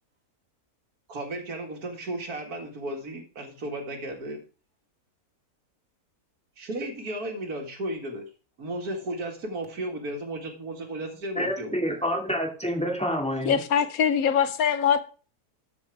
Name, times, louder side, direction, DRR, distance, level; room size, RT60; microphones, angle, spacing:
voice 1, 1.1-4.4 6.6-8.2 8.6-12.0, right 1 dB, 75° right, 2.3 m, -34 dB
voice 2, 11.4-13.6, equal, 5° left, 2.3 m, -28 dB
voice 3, 13.4-15.1, left 8 dB, 70° left, 1.1 m, -23 dB
13.0 x 5.6 x 4.7 m
omnidirectional pair, 1.6 m